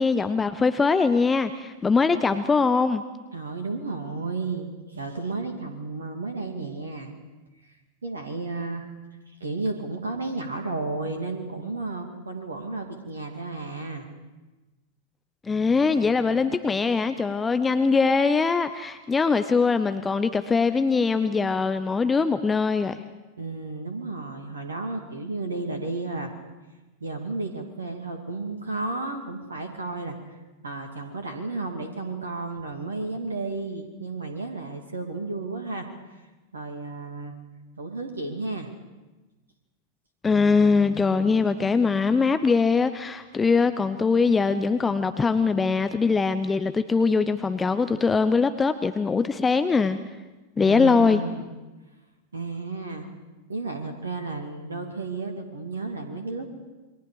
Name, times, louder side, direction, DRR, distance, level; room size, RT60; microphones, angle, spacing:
voice 1, 0.0-3.0 15.4-23.0 40.2-50.0 50.6-51.2, left 4 dB, 15° left, 11 dB, 0.8 m, -22 dB
voice 2, 3.3-7.2 8.0-8.9 9.3-14.1 23.4-26.3 27.0-30.2 30.6-35.9 36.1-36.2 36.5-37.3 37.8-38.7 50.7-51.4 52.3-53.1 53.5-56.5, right 3 dB, 70° right, 5 dB, 2.6 m, -33 dB
28.0 x 23.0 x 5.1 m, 1.1 s
figure-of-eight pair, 90°, 0 cm